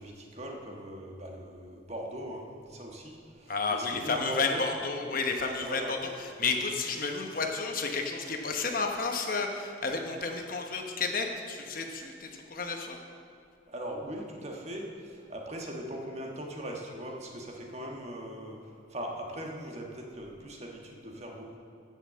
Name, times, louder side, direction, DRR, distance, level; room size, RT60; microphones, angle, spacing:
voice 1, 0.0-4.6 5.6-6.2 13.7-21.6, right 1 dB, 35° right, 0 dB, 1.4 m, -40 dB
voice 2, 3.5-6.1 6.4-13.0, left 4 dB, 45° left, 3 dB, 1.0 m, -31 dB
14.0 x 5.7 x 7.4 m, 2.3 s
head